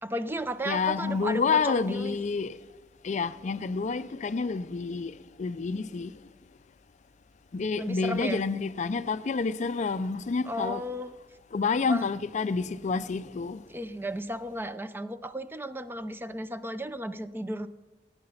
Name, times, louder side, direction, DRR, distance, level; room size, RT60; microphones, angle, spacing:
voice 1, 0.0-2.2 7.8-8.4 10.4-11.1 11.9-12.1 13.7-17.7, equal, 10° right, 0.5 m, -34 dB
voice 2, 0.7-2.6 3.0-6.1 7.5-10.8 11.5-13.6, left 4 dB, 45° left, 0.4 m, -29 dB
17.5 x 9.6 x 5.7 m
head